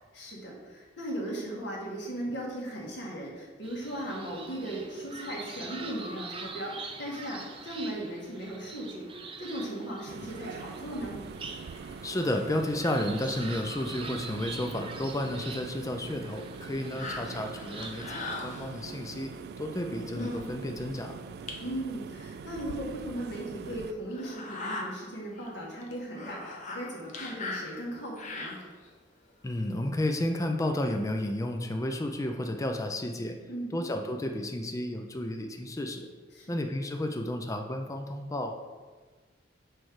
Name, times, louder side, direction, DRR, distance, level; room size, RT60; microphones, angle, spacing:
voice 1, 0.1-9.1 9.4-11.2 17.0-17.3 21.6-28.6 33.5-33.8 36.3-36.6, right 1 dB, 70° left, -4 dB, 1.9 m, -37 dB
sound 1, 3.6-18.1, right 4 dB, 30° right, 0.7 m, -44 dB
sound 2, 10.1-23.9, right 5 dB, 60° right, 0.3 m, -43 dB
voice 2, 12.0-21.2 29.4-33.4 33.7-36.1 36.5-38.6, left 1 dB, 20° left, 4 dB, 0.5 m, -32 dB
sound 3, 16.9-19.0 19.7-19.8 20.1-20.5 21.0-21.1 21.5-21.6 22.6-22.7 23.2-23.3 24.1-24.8 25.4-25.5 25.8-28.9 29.5-29.6, left 2 dB, 40° left, 0.9 m, -39 dB
6.4 x 4.5 x 4.8 m, 1.4 s
head